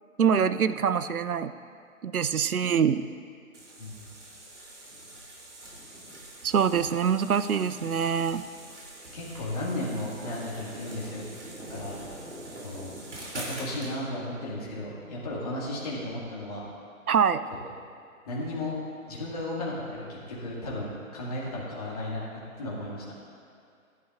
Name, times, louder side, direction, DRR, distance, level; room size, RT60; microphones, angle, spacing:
voice 1, 0.2-1.5 2.0-3.1 6.4-8.4 17.1-17.4, right 7 dB, 80° right, 13 dB, 0.6 m, -24 dB
sound 1, 3.5-13.9, right 1 dB, 55° right, 3.0 m, -43 dB
voice 2, 9.1-11.2 11.7-12.0 12.6-12.9 13.3-16.6 17.6-17.7 18.3-18.7 19.1-22.3 22.6-23.0, left 1 dB, 25° left, -5 dB, 2.0 m, -34 dB
15.5 x 11.0 x 2.4 m, 2.4 s
figure-of-eight pair, 150°, 43 cm